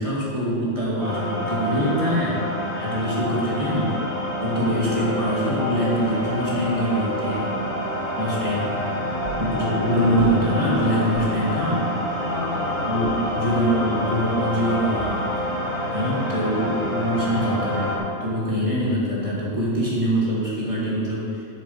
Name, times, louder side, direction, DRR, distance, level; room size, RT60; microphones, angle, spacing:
voice 1, 0.0-2.4 2.8-3.9 4.4-7.5 8.2-9.0 9.4-11.9 12.9-15.3 15.9-21.4, equal, 25° right, -7 dB, 2.3 m, -24 dB
sound 1, 1.0-18.0, equal, 45° left, 2.4 m, -27 dB
voice 2, 2.2-3.0 3.7-4.1 9.4-9.6 9.9-10.3 12.1-13.8, left 3 dB, 85° left, -3 dB, 1.9 m, -35 dB
sound 2, 9.3-9.5 10.2-10.5 11.1-11.4 13.1-13.4 15.0-15.5, right 10 dB, 75° right, 0.9 m, -38 dB
8.0 x 7.1 x 5.7 m, 2.6 s
omnidirectional pair, 1.3 m